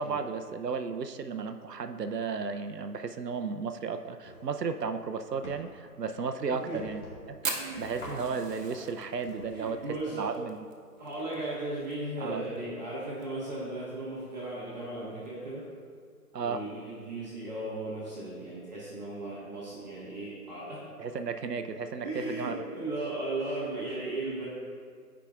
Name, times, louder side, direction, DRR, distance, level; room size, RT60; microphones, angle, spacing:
voice 1, 0.0-7.0 7.3-9.8 10.2-10.6 12.2-12.5 16.3-16.6 21.0-22.6, right 5 dB, 85° right, 8 dB, 0.7 m, -34 dB
sound 1, 4.2-4.5 4.9-5.7 6.2-7.4 8.0-8.3 8.7-10.1, equal, 45° left, 1.6 m, -46 dB
Fire, 7.4-11.9 12.2-12.3 12.6-12.7 13.0-13.5 14.0-14.1 15.1-15.3, right 4 dB, 55° right, 1.1 m, -38 dB
voice 2, 7.5-7.9 9.5-10.3 11.0-15.6 16.4-20.8 22.0-24.5, right 2 dB, 25° right, -8 dB, 1.2 m, -36 dB
13.5 x 4.9 x 2.4 m, 2.1 s
figure-of-eight pair, 150°, 47 cm